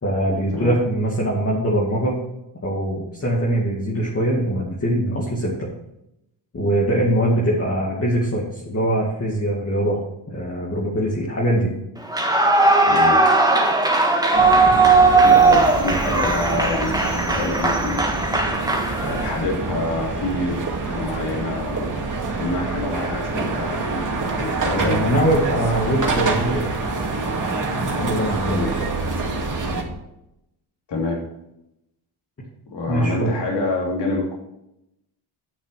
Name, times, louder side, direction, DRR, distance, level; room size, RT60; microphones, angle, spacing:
voice 1, 0.0-2.2 2.6-5.7 6.5-10.0 10.3-11.7 14.7-14.8 24.7-26.7 27.8-29.0 32.9-33.3, right 1 dB, 30° left, -4 dB, 2.3 m, -22 dB
Clapping / Cheering / Applause, 12.0-19.4, right 3 dB, 10° right, 1.5 m, -18 dB
voice 2, 12.8-13.2 15.2-18.0 19.0-22.0 22.4-25.3 28.4-28.9 30.9-31.2 32.7-34.3, left 2 dB, 60° left, -2 dB, 3.2 m, -27 dB
sound 1, 14.3-29.8, right 3 dB, 40° right, 2.4 m, -26 dB
9.9 x 6.4 x 5.8 m, 0.84 s
cardioid pair, 95°, 47 cm